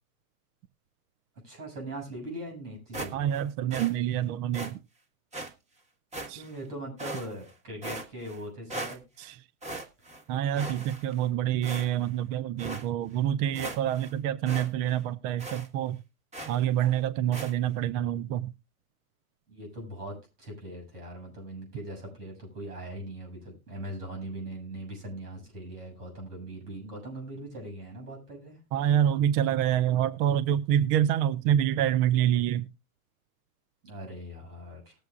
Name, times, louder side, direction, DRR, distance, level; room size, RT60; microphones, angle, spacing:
voice 1, 1.4-3.3 6.3-9.0 17.6-17.9 19.5-28.6 33.8-34.9, right 1 dB, 90° right, 7.2 m, -40 dB
sound 1, 2.9-3.4 3.7-3.9 4.5-4.7 5.3-5.5 6.1-6.6 7.0-7.5 7.8-8.4 8.7-9.3 9.6-10.2 10.5-11.2 11.6-12.1 12.6-12.8 13.2-13.3 13.5-14.1 14.5-14.7 14.9-15.0 15.4-15.7 16.3-16.6 17.3-17.5, right 2 dB, 15° right, 1.5 m, -38 dB
voice 2, 3.1-4.8 6.3-6.4 9.2-9.4 10.3-16.0 16.5-18.5 28.7-32.7, right 11 dB, 40° right, 0.6 m, -27 dB
19.5 x 7.8 x 2.4 m
hypercardioid pair, 115°, 45 cm